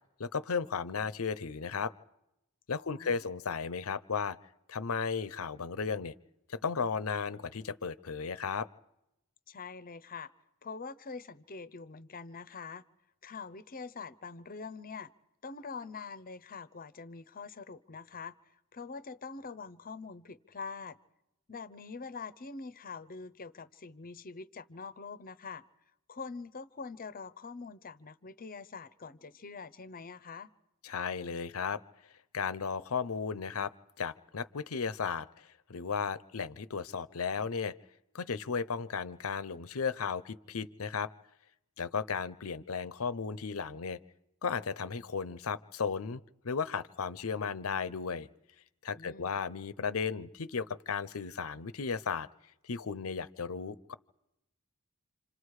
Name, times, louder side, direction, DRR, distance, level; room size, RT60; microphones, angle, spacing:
voice 1, 0.2-1.9 2.7-4.4 4.7-6.1 6.5-8.7 30.8-31.8 32.3-37.7 38.1-41.1 41.8-44.0 44.4-48.3 48.8-52.3 52.6-53.9, left 5 dB, 75° left, 16 dB, 0.7 m, -35 dB
voice 2, 2.8-3.2 9.5-10.3 10.6-12.8 13.2-15.1 15.4-18.4 18.7-21.0 21.5-25.6 26.1-30.5 48.9-49.3, left 4 dB, 40° left, 17 dB, 0.8 m, -44 dB
27.5 x 27.0 x 4.9 m, 0.88 s
head